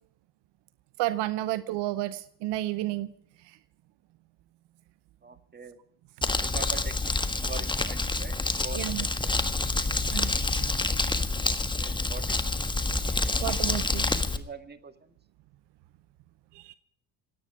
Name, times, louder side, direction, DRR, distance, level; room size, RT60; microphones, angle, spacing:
voice 1, 1.0-3.1 3.5-3.6 8.8-9.1 10.1-10.7 13.0-14.1 16.5-16.7, right 16 dB, 65° right, 16 dB, 0.8 m, -32 dB
voice 2, 5.2-5.8 6.4-9.4 11.4-12.4 14.2-15.1, right 4 dB, 20° right, 10 dB, 1.9 m, -43 dB
Crumpling crinkling, 6.2-14.4, left 3 dB, 10° left, 1.5 m, -27 dB
27.0 x 9.4 x 4.9 m, 0.71 s
hypercardioid pair, 70°, 45 cm